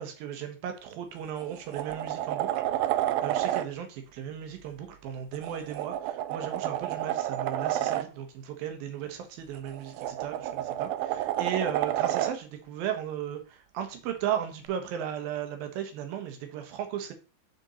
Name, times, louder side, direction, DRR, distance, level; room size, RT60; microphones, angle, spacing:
voice 1, 0.0-2.6 2.9-17.1, right 9 dB, 70° right, 2.8 m, -36 dB
sound 1, 0.8-0.9 1.4-3.7 5.3-8.1 9.6-12.4 14.7-14.8, right 13 dB, 85° right, 2.1 m, -30 dB
9.3 x 4.5 x 4.1 m
omnidirectional pair, 4.7 m